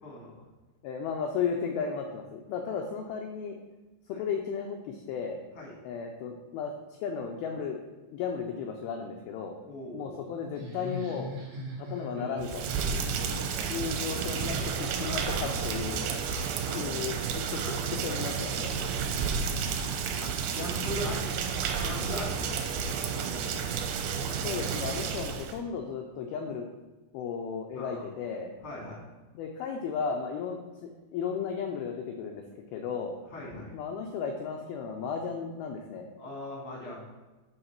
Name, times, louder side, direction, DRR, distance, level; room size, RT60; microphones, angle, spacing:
voice 1, 0.0-0.3 4.1-4.2 5.5-5.7 9.6-10.2 13.0-13.5 18.9-19.7 20.2-21.3 21.7-22.4 22.7-23.6 23.8-23.9 27.7-28.0 28.6-29.0 33.3-33.7 36.2-37.0, left 1 dB, 50° left, -3 dB, 0.7 m, -40 dB
voice 2, 0.8-3.6 4.1-5.4 5.8-6.7 7.0-7.8 8.1-9.5 9.9-11.3 11.8-12.6 13.6-16.0 16.7-18.7 24.2-26.7 27.1-28.5 29.3-32.4 32.7-33.2 33.7-36.1, left 6 dB, 90° left, 2 dB, 2.1 m, -34 dB
Laughter, 10.6-18.4, equal, 60° right, 1.6 m, -42 dB
Rain, 12.4-25.6, right 6 dB, 85° right, 2.8 m, -31 dB
8.2 x 4.0 x 5.8 m, 1.2 s
omnidirectional pair, 5.2 m